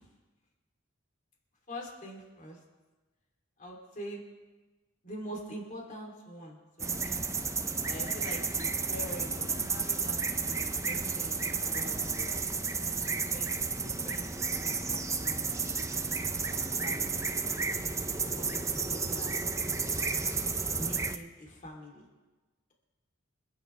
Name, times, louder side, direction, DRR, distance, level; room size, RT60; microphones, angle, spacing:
voice 1, 1.7-2.6 3.6-4.2 5.0-7.2 7.8-12.4 13.1-14.3 14.5-17.3 18.1-20.1 20.8-22.0, equal, 40° left, -1 dB, 3.1 m, -45 dB
sound 1, 6.8-21.2, right 4 dB, 15° right, 0.5 m, -32 dB
26.0 x 9.7 x 3.4 m, 1.2 s
head